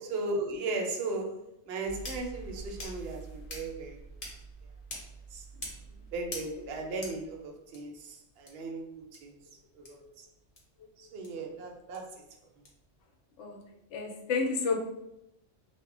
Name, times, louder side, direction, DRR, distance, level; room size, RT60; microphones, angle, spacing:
voice 1, 0.1-4.0 5.3-5.4 6.1-9.3 9.8-10.0 11.0-12.2, right 2 dB, 65° right, 1 dB, 0.7 m, -36 dB
sound 1, 1.9-7.8 8.5-8.6 9.1-9.2 9.8-9.9 10.6-10.7 11.2-11.3 11.9-12.0 12.6-12.7, right 1 dB, 40° left, 0.5 m, -44 dB
voice 2, 9.8-10.1 13.4-13.6 13.9-14.8, left 4 dB, 75° left, 2 dB, 0.9 m, -31 dB
2.1 x 2.1 x 3.6 m, 0.83 s
omnidirectional pair, 1.3 m